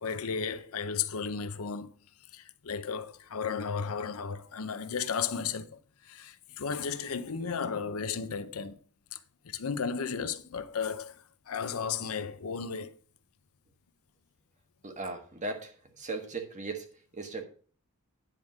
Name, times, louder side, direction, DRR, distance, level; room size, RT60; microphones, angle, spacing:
voice 1, 0.0-1.9 2.3-8.8 9.1-9.2 9.4-11.2 11.5-13.0, left 6 dB, 70° left, 0.6 m, -34 dB
voice 2, 14.8-17.4, right 3 dB, 35° right, 1.5 m, -38 dB
9.9 x 3.6 x 6.3 m
head